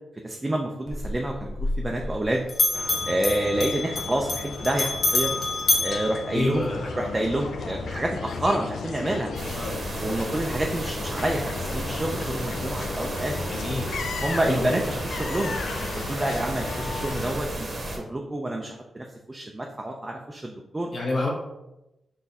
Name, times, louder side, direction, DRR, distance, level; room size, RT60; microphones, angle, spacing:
voice 1, 0.2-2.4 3.0-5.4 5.8-6.7 7.0-9.3 10.0-13.4 14.2-15.6 16.1-20.9, right 1 dB, 20° right, 1 dB, 0.4 m, -28 dB
Bell, 0.9-2.2 2.5-7.0, left 2 dB, 60° left, 0.8 m, -27 dB
sound 1, 2.7-17.3, left 4 dB, 80° left, 0.4 m, -35 dB
voice 2, 6.3-7.0 9.5-9.7 13.5-13.9 14.5-14.8 20.9-21.3, left 2 dB, 45° left, -3 dB, 1.4 m, -29 dB
sound 2, 9.3-18.0, right 1 dB, 45° right, 0.9 m, -33 dB
3.9 x 2.6 x 4.1 m, 0.93 s
cardioid pair, 100°, 0 cm